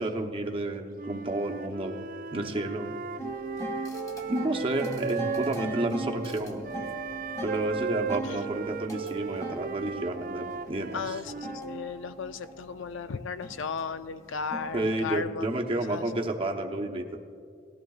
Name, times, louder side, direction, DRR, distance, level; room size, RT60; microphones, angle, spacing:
voice 1, 0.0-2.0 2.3-3.0 4.3-6.7 7.4-11.2 14.7-17.0, right 1 dB, 30° right, 2 dB, 0.8 m, -31 dB
Wind instrument woodwind instrument, 0.9-5.9 6.6-11.6, right 6 dB, 45° right, 0.3 m, -36 dB
sound 1, 3.2-15.2, right 1 dB, 15° left, 1.0 m, -40 dB
voice 2, 10.9-16.3, left 5 dB, 80° left, 12 dB, 0.5 m, -36 dB
18.5 x 14.5 x 2.4 m, 2.3 s
head